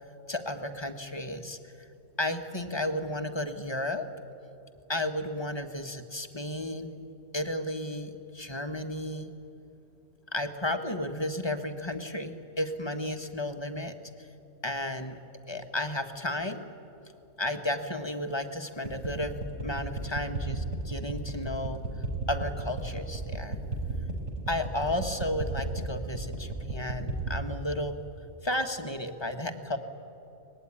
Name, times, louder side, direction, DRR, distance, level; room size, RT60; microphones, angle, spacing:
voice 1, 0.3-1.7 2.2-4.1 4.9-7.0 7.3-9.3 10.3-14.3 14.6-15.2 15.5-16.6 17.4-19.3 19.6-21.8 22.3-23.6 24.5-28.0 28.4-29.8, left 1 dB, 20° left, 6 dB, 1.2 m, -33 dB
sound 1, 18.9-27.4, right 3 dB, 65° right, 4.6 m, -34 dB
23.5 x 19.5 x 9.8 m, 2.8 s
omnidirectional pair, 1.4 m